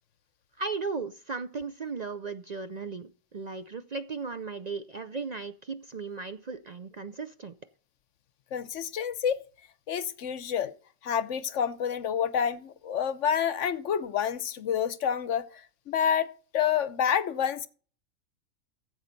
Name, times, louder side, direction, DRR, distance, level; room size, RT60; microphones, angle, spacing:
voice 1, 0.6-3.1 3.3-7.5, right 4 dB, 50° right, 0.5 m, -36 dB
voice 2, 8.5-9.4 9.9-10.7 11.0-15.5 15.9-16.3 16.5-17.7, left 8 dB, 65° left, 1.0 m, -28 dB
14.5 x 8.0 x 4.0 m
omnidirectional pair, 1.4 m